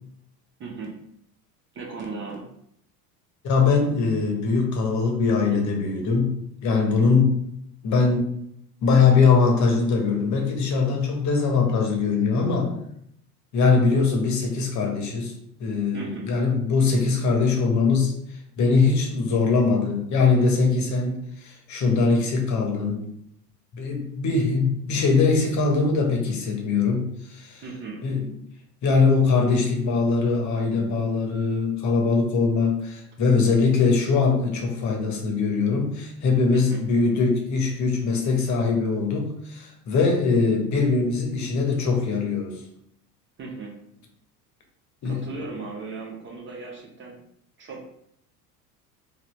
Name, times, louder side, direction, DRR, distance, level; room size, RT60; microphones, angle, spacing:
voice 1, 0.6-0.9 1.7-2.5 15.9-16.3 27.6-28.0 36.5-36.8 43.4-43.7 45.0-47.2 47.6-47.9, right 4 dB, 25° right, 0 dB, 0.6 m, -36 dB
voice 2, 3.4-7.4 7.8-8.3 8.8-12.7 13.5-15.3 15.6-18.1 18.6-23.0 23.7-27.6 28.0-28.3 28.8-42.6 45.0-45.2, left 4 dB, 35° left, 2 dB, 0.9 m, -22 dB
3.8 x 2.0 x 3.1 m, 0.72 s
figure-of-eight pair, 75°, 48 cm